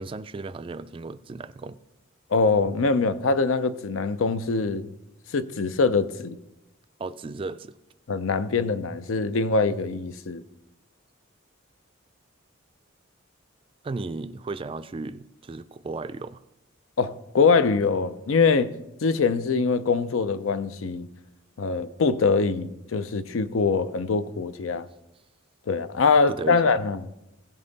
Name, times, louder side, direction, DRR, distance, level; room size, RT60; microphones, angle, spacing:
voice 1, 0.0-1.8 7.0-7.7 13.8-16.4 26.3-26.6, right 3 dB, 25° right, 0.3 m, -35 dB
voice 2, 2.3-4.9 5.3-6.4 8.1-10.4 17.0-18.7 19.0-21.1 21.6-24.9 25.7-27.0, left 4 dB, 80° left, 0.5 m, -23 dB
16.0 x 5.4 x 4.0 m
head